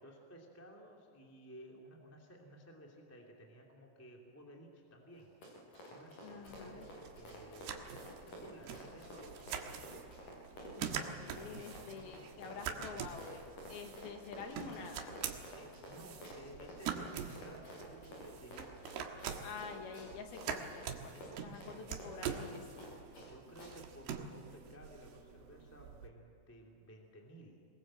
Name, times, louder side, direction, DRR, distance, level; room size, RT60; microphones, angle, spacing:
voice 1, 0.0-5.3 5.8-8.1 8.3-10.0 10.8-12.9 15.5-18.9 21.0-22.0 23.2-27.7, equal, 5° left, 0 dB, 1.3 m, -56 dB
Run, 5.1-23.3 23.6-23.7, equal, 45° left, 7.6 m, -51 dB
voice 2, 6.2-6.9 10.8-13.4 13.7-15.2 19.4-22.8, left 5 dB, 65° left, 4 dB, 3.1 m, -48 dB
Throwing Cards On Table, 6.5-26.1, right 7 dB, 70° right, 3.2 m, -45 dB
23.5 x 21.0 x 7.6 m, 2.7 s
omnidirectional pair, 5.2 m